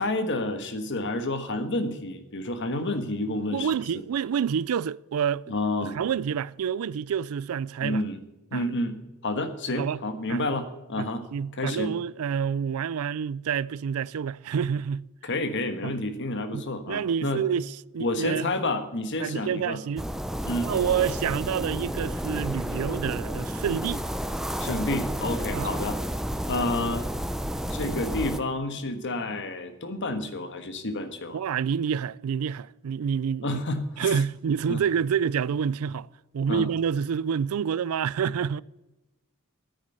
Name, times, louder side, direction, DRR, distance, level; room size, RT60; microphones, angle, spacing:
voice 1, 0.0-3.8 5.5-5.9 7.8-8.2 8.5-9.0 9.2-11.2 11.5-11.9 15.2-17.4 18.0-19.8 20.4-20.7 24.6-26.0 26.5-27.1 27.7-31.4 33.4-34.1 34.7-34.8 36.5-36.7, left 2 dB, 55° left, 1.4 m, -29 dB
voice 2, 3.5-5.4 5.9-8.0 8.5-8.6 9.8-10.0 10.3-10.4 11.0-15.1 15.8-15.9 16.5-18.5 19.2-20.1 20.6-24.0 25.5-25.7 31.3-33.6 34.0-36.1 36.3-38.6, right 7 dB, 70° right, 0.4 m, -28 dB
sound 1, 20.0-28.4, equal, ahead, 0.5 m, -31 dB
9.8 x 9.3 x 8.0 m
head